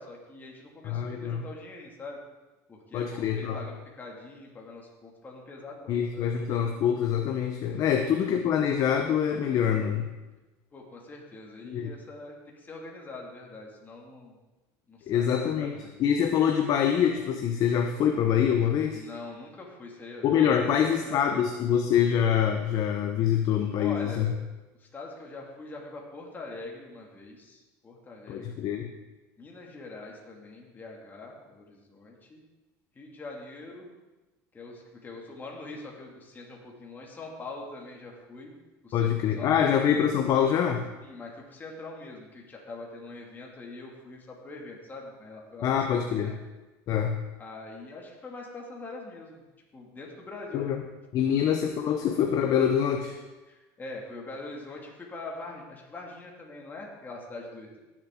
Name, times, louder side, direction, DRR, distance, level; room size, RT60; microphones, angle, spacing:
voice 1, 0.0-2.2 2.7-6.3 7.9-8.3 10.7-14.4 14.9-16.0 18.9-21.4 23.8-24.4 24.8-28.6 29.4-32.4 33.0-33.9 34.5-38.5 38.8-39.8 41.0-45.9 46.2-46.4 47.4-49.4 49.7-50.8 51.2-51.4 53.5-57.8, left 2 dB, 20° left, -1 dB, 2.3 m, -43 dB
voice 2, 0.9-1.4 2.9-3.6 5.9-10.1 11.6-11.9 15.1-15.7 16.0-19.0 20.2-24.3 28.3-28.9 38.9-40.8 45.6-46.4 46.9-47.2 50.5-50.8 51.1-53.2, left 8 dB, 45° left, 5 dB, 0.9 m, -25 dB
17.5 x 7.4 x 3.8 m, 1.1 s
supercardioid pair, 115°, 9 cm